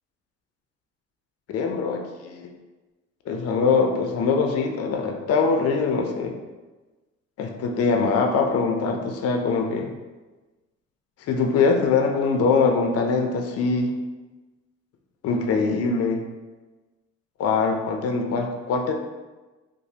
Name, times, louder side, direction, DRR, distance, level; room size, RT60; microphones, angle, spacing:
voice 1, 1.5-2.5 3.3-6.3 7.4-9.9 11.3-13.9 15.2-16.2 17.4-18.9, left 4 dB, 55° left, 4 dB, 0.4 m, -23 dB
3.0 x 2.1 x 2.7 m, 1.2 s
cardioid pair, 90°, 30 cm